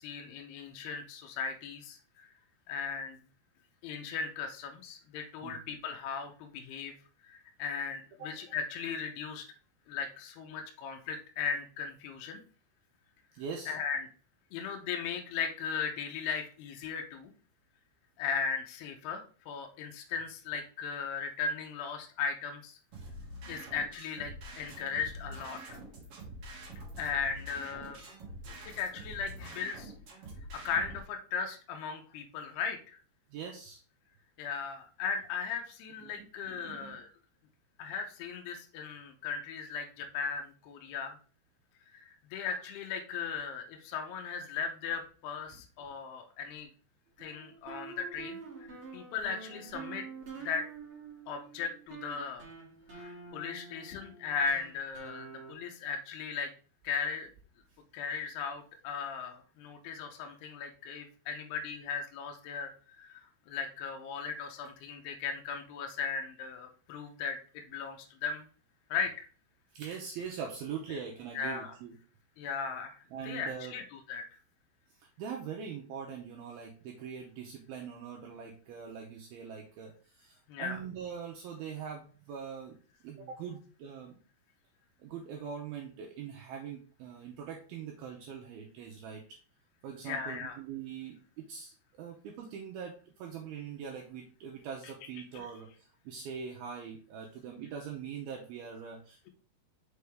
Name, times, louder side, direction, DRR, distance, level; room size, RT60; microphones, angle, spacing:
voice 1, 0.0-2.3 2.7-3.2 3.8-6.9 7.2-9.5 9.9-12.4 13.7-14.1 14.5-17.3 18.2-22.8 23.5-25.8 27.0-28.0 28.8-29.9 30.5-33.0 34.4-37.1 37.8-41.1 41.9-46.7 47.2-48.4 48.7-50.0 50.4-50.6 51.3-52.5 52.9-56.5 56.8-57.3 57.9-63.2 63.5-68.5 68.9-69.3 71.3-71.7 72.4-74.2 80.5-80.8 90.1-90.6 95.3-95.4, left 6 dB, 80° left, 3 dB, 2.4 m, -37 dB
voice 2, 13.3-13.7 33.3-33.8 36.0-37.0 45.5-45.6 69.7-72.0 73.1-73.8 75.0-82.8 83.0-84.2 85.0-89.2 89.8-99.3, right 7 dB, 90° right, 0 dB, 2.1 m, -42 dB
sound 1, 22.9-31.0, right 1 dB, 50° right, 1.8 m, -46 dB
sound 2, 47.2-55.5, right 5 dB, 35° right, 2.7 m, -47 dB
6.7 x 4.8 x 3.5 m, 0.40 s
omnidirectional pair, 5.4 m